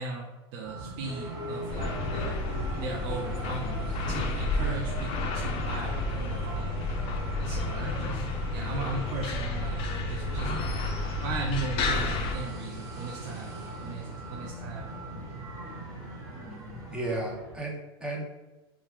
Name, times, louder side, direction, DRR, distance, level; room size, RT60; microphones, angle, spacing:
voice 1, 0.0-2.4 2.8-6.8 7.4-8.3 8.5-10.6 11.2-14.9, right 4 dB, 60° right, -1 dB, 0.5 m, -37 dB
sound 1, 0.6-17.6, right 2 dB, 85° right, 1.1 m, -42 dB
sound 2, 1.0-17.0, left 1 dB, 25° right, 1.2 m, -42 dB
sound 3, 1.7-12.3, left 2 dB, 45° left, 0.4 m, -31 dB
voice 2, 16.9-18.2, right 2 dB, 5° right, -1 dB, 0.7 m, -33 dB
3.0 x 2.2 x 3.3 m, 1.1 s
hypercardioid pair, 110°, 13 cm